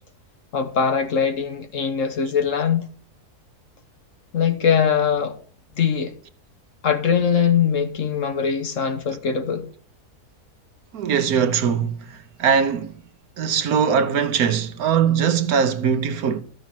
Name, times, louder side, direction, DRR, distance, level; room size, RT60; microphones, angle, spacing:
voice 1, 0.5-2.9 4.3-5.4 5.8-6.1 6.8-9.7, left 7 dB, 55° left, 1.2 m, -21 dB
voice 2, 10.9-12.9 13.4-16.4, right 7 dB, 70° right, 1.4 m, -21 dB
13.5 x 6.4 x 4.3 m
omnidirectional pair, 1.7 m